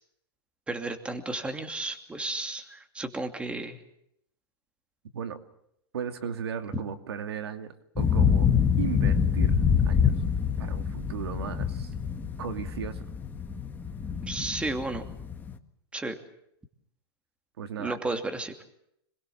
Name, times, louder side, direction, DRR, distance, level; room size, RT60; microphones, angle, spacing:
voice 1, 0.7-3.8 14.2-15.0 15.9-16.2 17.8-18.5, right 2 dB, 10° right, 6 dB, 2.7 m, -33 dB
voice 2, 5.9-8.5 8.8-9.5 9.8-10.1 10.6-11.9 12.4-13.1 17.6-18.0, right 7 dB, 80° right, 7 dB, 2.5 m, -36 dB
sound 1, 8.0-15.6, left 7 dB, 15° left, 1.8 m, -26 dB
26.5 x 21.5 x 7.3 m, 0.76 s
hypercardioid pair, 125°, 13 cm